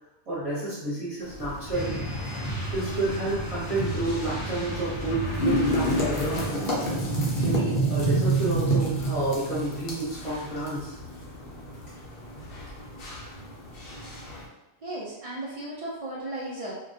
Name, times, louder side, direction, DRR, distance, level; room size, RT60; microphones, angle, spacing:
voice 1, 0.3-2.0 2.7-6.8 7.4-11.0, right 2 dB, 35° right, -11 dB, 0.7 m, -30 dB
sound 1, 1.2-14.4, right 2 dB, 60° left, 0.8 m, -30 dB
sound 2, 1.7-6.9, right 1 dB, 40° left, 0.4 m, -33 dB
voice 2, 14.8-16.7, right 1 dB, 65° right, -5 dB, 0.3 m, -35 dB
2.2 x 2.2 x 2.6 m, 0.97 s
omnidirectional pair, 1.2 m